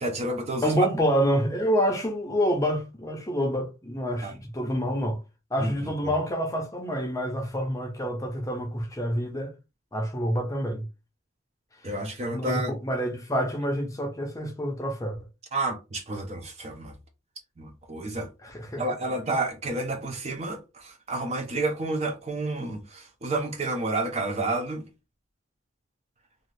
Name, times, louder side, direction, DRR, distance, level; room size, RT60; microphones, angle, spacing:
voice 1, 0.0-0.9 4.2-4.3 5.6-5.7 11.8-12.7 15.5-16.9 17.6-18.3 18.8-24.8, right 2 dB, 30° right, 0.6 m, -30 dB
voice 2, 0.6-5.2 5.5-9.5 9.9-10.9 11.8-11.9 12.3-15.2 18.4-18.9, equal, 15° left, 0.6 m, -27 dB
2.7 x 2.4 x 3.2 m
head